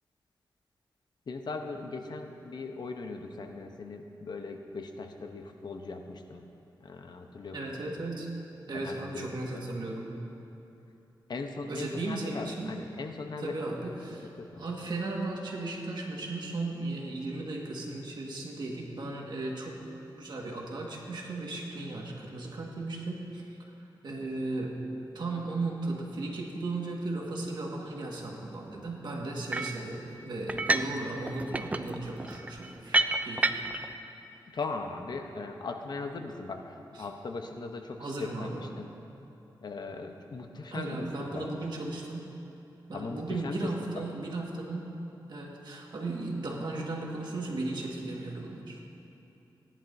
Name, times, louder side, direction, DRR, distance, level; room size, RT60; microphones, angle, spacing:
voice 1, 1.3-6.5 6.8-8.0 8.7-9.6 11.3-13.7 14.4-14.6 34.5-38.9 39.6-41.0 41.3-41.5 42.9-44.0, left 3 dB, 60° left, 4 dB, 0.8 m, -39 dB
voice 2, 7.5-8.3 8.7-10.2 11.7-12.7 13.4-14.3 14.6-19.7 20.1-23.4 24.0-24.8 25.1-33.0 33.2-33.6 36.9-37.1 38.0-38.6 40.7-42.3 42.9-44.9 45.3-48.8, right 2 dB, 65° right, -1 dB, 1.7 m, -36 dB
sound 1, 29.5-29.8 30.5-31.0 31.3-33.9, right 2 dB, 20° right, 0.4 m, -29 dB
17.0 x 11.0 x 2.7 m, 2.9 s
wide cardioid pair, 95°, 8 cm